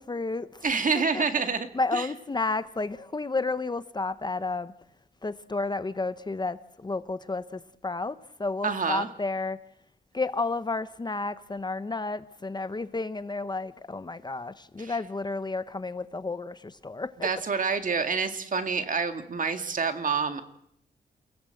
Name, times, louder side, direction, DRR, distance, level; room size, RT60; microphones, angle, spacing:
voice 1, 0.0-0.7 0.9-1.3 1.7-4.7 5.2-9.6 10.1-17.3, left 3 dB, 25° left, 0.9 m, -31 dB
voice 2, 0.6-1.7 1.9-2.0 8.6-9.1 14.8-14.9 17.2-20.4, right 5 dB, 50° right, 2.1 m, -27 dB
29.5 x 17.0 x 7.8 m
wide cardioid pair, 125°, 18 cm